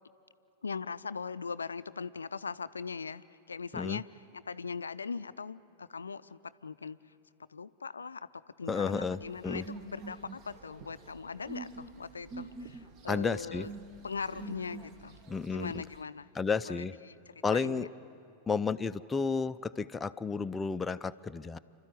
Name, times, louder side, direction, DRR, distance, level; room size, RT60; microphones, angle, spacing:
voice 1, 0.6-7.0 7.5-8.3 8.6-13.7 14.0-15.2 15.5-16.3 16.6-17.9, left 5 dB, 75° left, 15 dB, 0.4 m, -40 dB
voice 2, 8.7-9.6 13.1-13.7 15.3-15.8 16.3-16.9 17.4-17.9 18.5-21.6, left 5 dB, 15° left, 11 dB, 0.4 m, -32 dB
sound 1, 8.9-16.0, right 3 dB, 40° right, 1.3 m, -47 dB
29.5 x 13.0 x 9.5 m, 2.6 s
figure-of-eight pair, 90°, 0 cm